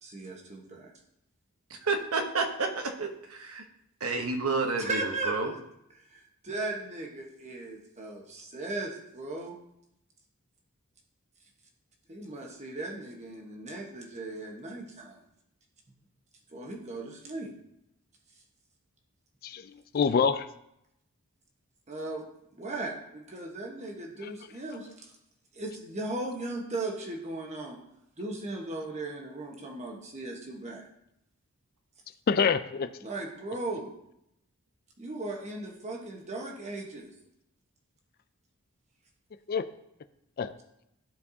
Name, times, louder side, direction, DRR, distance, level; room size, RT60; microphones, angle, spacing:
voice 1, 0.0-0.9 4.8-5.6 6.0-9.6 12.1-15.2 16.5-17.5 21.9-22.2 22.5-25.1 25.5-27.8 28.2-30.9 33.0-33.9 35.0-37.1, right 2 dB, 30° right, 0 dB, 1.2 m, -37 dB
voice 2, 1.7-3.6 4.0-5.5, right 3 dB, 75° right, 4 dB, 1.0 m, -30 dB
voice 3, 19.4-20.5 24.2-24.3 32.3-32.9 39.5-39.7 40.4-40.5, left 6 dB, 45° left, 12 dB, 0.3 m, -26 dB
13.5 x 4.6 x 2.8 m, 0.80 s
head